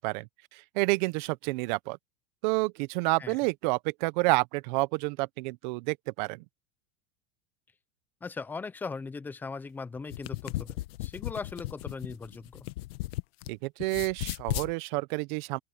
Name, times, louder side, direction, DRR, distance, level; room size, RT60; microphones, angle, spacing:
voice 1, 0.0-2.0 2.4-6.4 13.5-15.6, right 24 dB, 45° right, 0.6 m, -29 dB
voice 2, 8.2-12.7, left 4 dB, 5° left, 0.4 m, -39 dB
sound 1, 10.0-13.5 13.8-14.7, left 17 dB, 70° left, 1.0 m, -35 dB
open air
supercardioid pair, 160°, 32 cm